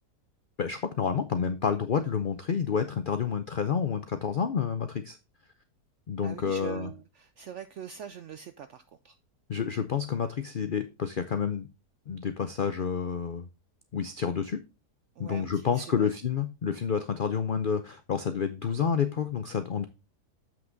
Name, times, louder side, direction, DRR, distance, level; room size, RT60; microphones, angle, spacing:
voice 1, 0.6-5.2 6.1-6.9 9.5-11.7 12.1-13.5 13.9-14.6 15.2-19.9, left 6 dB, 85° left, 9 dB, 0.4 m, -29 dB
voice 2, 6.2-9.2 15.2-16.1, right 9 dB, 75° right, 10 dB, 0.6 m, -43 dB
7.7 x 6.0 x 3.9 m, 0.29 s
omnidirectional pair, 1.8 m